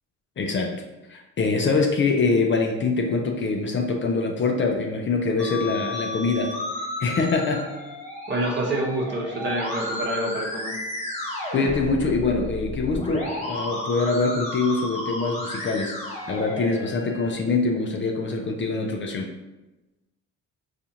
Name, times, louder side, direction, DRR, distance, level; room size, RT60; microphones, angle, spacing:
voice 1, 0.4-0.8 1.1-6.5 7.0-7.7 11.5-15.9 16.3-19.3, left 3 dB, 40° left, 2 dB, 0.5 m, -24 dB
Musical instrument, 5.4-17.3, left 1 dB, 20° left, 1.1 m, -33 dB
voice 2, 8.3-10.7, right 1 dB, 35° right, -1 dB, 0.9 m, -27 dB
4.1 x 2.5 x 2.8 m, 1.0 s
cardioid pair, 90°, 30 cm